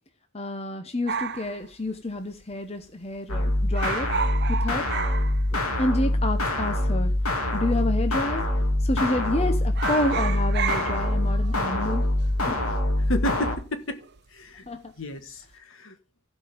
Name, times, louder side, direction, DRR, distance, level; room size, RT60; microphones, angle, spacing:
voice 1, 0.3-4.1 4.5-4.9 5.8-7.1 7.5-8.5 8.8-12.1 12.5-12.7 14.7-14.9, left 1 dB, 30° left, 0.9 m, -29 dB
sound 1, 1.1-2.5 2.8-2.9 3.1-3.4 3.7-6.0 6.3-6.4 7.2-7.8 8.1-8.4 8.7-9.3 9.6-14.3 14.6-15.0, right 6 dB, 50° right, 0.8 m, -33 dB
sound 2, 3.3-13.6, left 1 dB, 85° left, 2.9 m, -25 dB
voice 2, 13.1-14.0 14.3-14.7 15.0-16.0, left 1 dB, 60° left, 1.6 m, -31 dB
15.5 x 5.4 x 5.2 m
head